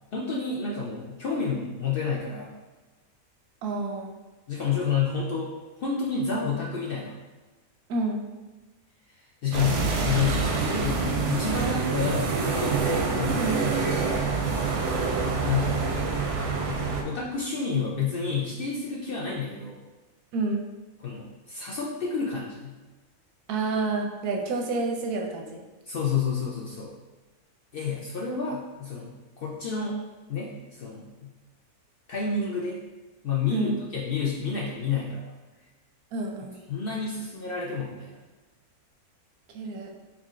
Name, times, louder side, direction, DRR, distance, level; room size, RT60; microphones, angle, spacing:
voice 1, 0.1-2.5 4.5-5.5 5.8-7.1 9.4-12.8 13.2-13.5 14.2-14.4 15.4-16.3 16.7-19.8 21.0-22.7 25.9-26.9 27.7-30.0 30.3-31.3 32.1-32.8 33.2-35.2 36.7-38.2, left 5 dB, 75° left, -4 dB, 0.5 m, -30 dB
voice 2, 3.6-4.1 7.9-8.2 13.4-13.7 20.3-20.6 23.5-25.6 33.5-33.7 36.1-36.6 39.5-39.9, right 3 dB, 90° right, 1 dB, 1.2 m, -29 dB
sound 1, 9.5-17.0, right 4 dB, 65° right, 0.8 m, -26 dB
4.1 x 3.7 x 2.4 m, 1.2 s
omnidirectional pair, 1.6 m